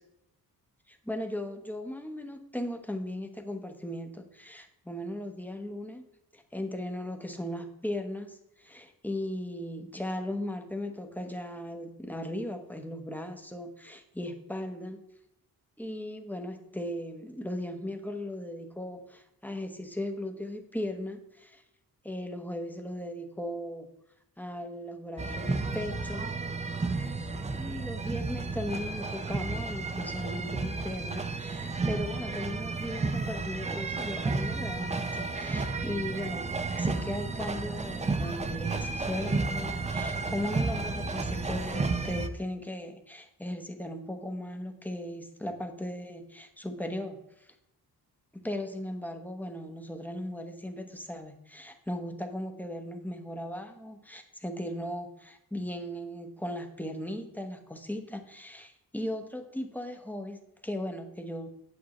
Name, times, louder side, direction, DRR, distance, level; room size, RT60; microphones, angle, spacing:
voice 1, 0.9-6.0 6.3-15.0 15.8-21.6 22.0-23.9 24.4-26.4 27.5-47.5 48.3-61.5, left 1 dB, 5° left, 5 dB, 0.9 m, -37 dB
sound 1, 25.2-42.3, right 3 dB, 20° right, 0.5 m, -32 dB
8.8 x 8.1 x 3.1 m, 0.80 s
cardioid pair, 115°, 38 cm